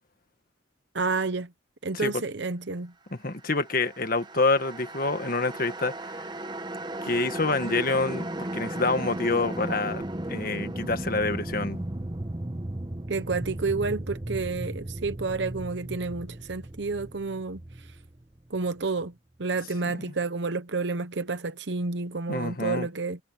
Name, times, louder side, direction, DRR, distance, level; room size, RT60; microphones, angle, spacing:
voice 1, 0.9-1.5 1.8-2.9 13.1-17.6 18.5-19.1 19.4-23.2, right 4 dB, 65° right, 0.9 m, -30 dB
voice 2, 3.1-6.2 7.0-8.3 8.5-11.8 19.9-20.0 22.3-22.9, left 3 dB, 45° left, 1.7 m, -27 dB
sound 1, 3.6-18.8, right 1 dB, 20° right, 0.9 m, -36 dB
head